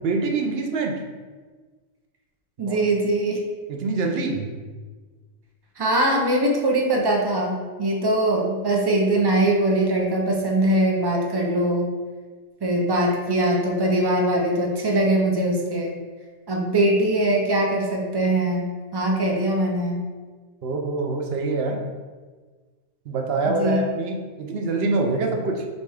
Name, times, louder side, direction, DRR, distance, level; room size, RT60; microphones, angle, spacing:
voice 1, 0.0-1.0 2.6-2.8 3.7-4.5 20.6-21.8 23.1-25.6, right 3 dB, 60° right, 3 dB, 0.7 m, -25 dB
voice 2, 2.6-3.4 5.8-11.9 12.6-15.9 16.5-20.0 23.5-23.8, right 1 dB, 40° right, -1 dB, 0.3 m, -22 dB
6.5 x 2.3 x 3.5 m, 1.4 s
omnidirectional pair, 1.3 m